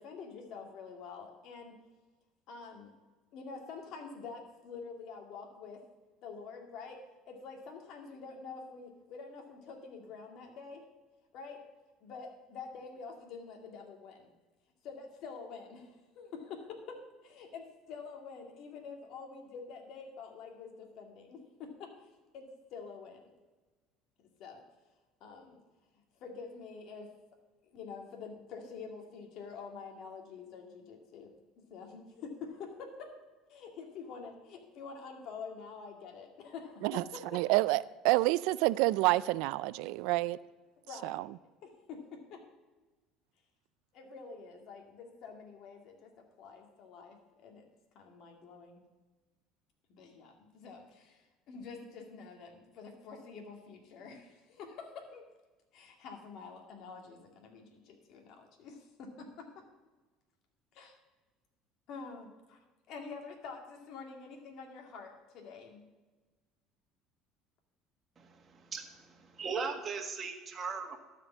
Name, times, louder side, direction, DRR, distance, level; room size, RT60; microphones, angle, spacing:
voice 1, 0.0-1.8 2.5-2.9 3.3-5.8 6.2-7.0 7.2-10.8 11.3-11.6 12.0-14.3 14.8-17.0 17.2-23.3 24.2-24.6 25.2-25.6 26.2-27.1 27.6-31.3 31.6-33.1 33.5-37.4 40.9-41.2 41.6-42.0 42.3-42.4 43.9-47.7 47.9-48.8 49.9-55.2 55.7-59.5 60.7-61.0 61.9-62.6 62.9-65.8, left 5 dB, 60° left, 2.1 m, -47 dB
voice 2, 37.3-40.4 41.0-41.2, right 19 dB, 80° right, 0.3 m, -28 dB
voice 3, 68.2-71.0, right 5 dB, 30° right, 1.6 m, -39 dB
12.5 x 5.2 x 7.2 m
cardioid pair, 115°, 0 cm